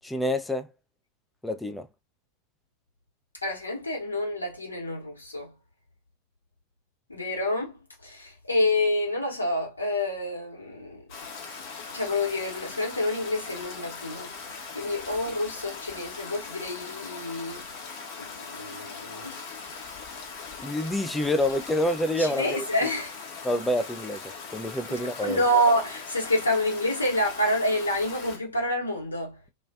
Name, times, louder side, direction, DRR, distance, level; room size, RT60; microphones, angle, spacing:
voice 1, 0.0-0.7 1.4-1.9 20.6-22.6 23.4-25.4, left 1 dB, 5° left, 0.3 m, -27 dB
voice 2, 3.4-5.5 7.1-7.8 8.0-11.0 11.9-14.3 14.7-17.6 18.2-19.6 22.2-23.1 24.9-29.4, left 1 dB, 80° left, 1.0 m, -28 dB
Stream, 11.1-28.4, left 5 dB, 45° left, 0.7 m, -40 dB
2.3 x 2.2 x 2.3 m
figure-of-eight pair, 90°, 0 cm